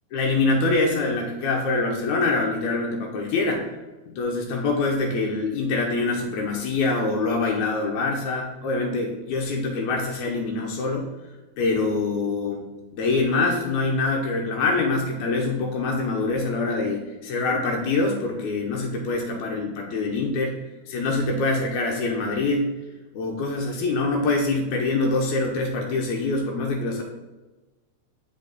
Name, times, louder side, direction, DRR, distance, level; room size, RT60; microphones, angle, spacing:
voice 1, 0.1-3.8 4.1-11.1 11.6-12.6 12.9-20.5 20.9-22.7 23.1-27.0, left 3 dB, 85° left, 1 dB, 2.2 m, -24 dB
6.6 x 5.2 x 4.0 m, 1.2 s
omnidirectional pair, 3.3 m